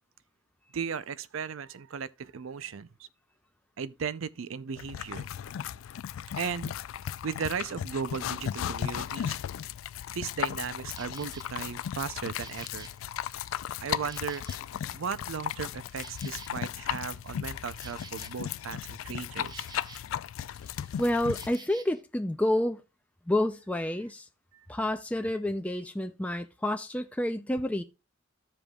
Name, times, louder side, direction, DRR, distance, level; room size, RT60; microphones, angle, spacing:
voice 1, 0.7-3.1 3.8-5.3 6.4-6.8 7.2-9.4 10.1-12.9 13.8-14.4 14.9-19.7 24.5-24.7, right 6 dB, 85° right, 0.5 m, -36 dB
sound 1, 4.8-21.6, left 9 dB, 85° left, 0.3 m, -36 dB
Insect, 10.6-11.5 12.0-15.0 15.3-20.2 20.5-22.0, right 4 dB, 20° right, 0.7 m, -52 dB
voice 2, 21.0-22.8 23.3-24.3 24.7-27.8, left 1 dB, 5° left, 0.4 m, -29 dB
14.5 x 5.1 x 2.3 m
head